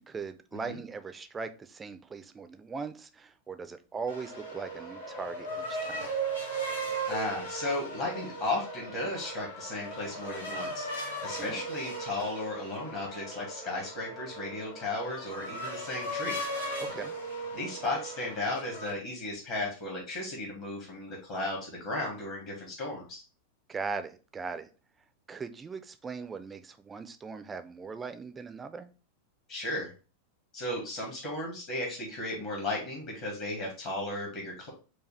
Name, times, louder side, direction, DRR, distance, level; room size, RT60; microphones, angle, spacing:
voice 1, 0.0-6.1 11.3-11.7 16.8-17.2 23.7-24.7 25.3-28.9, right 5 dB, 15° right, 0.4 m, -39 dB
sound 1, 4.1-18.9, right 2 dB, 75° left, 1.1 m, -37 dB
voice 2, 7.1-16.4 17.5-23.2 29.5-29.9 30.5-34.7, left 2 dB, 45° left, 1.4 m, -35 dB
4.9 x 2.3 x 3.2 m
figure-of-eight pair, 90°, 0 cm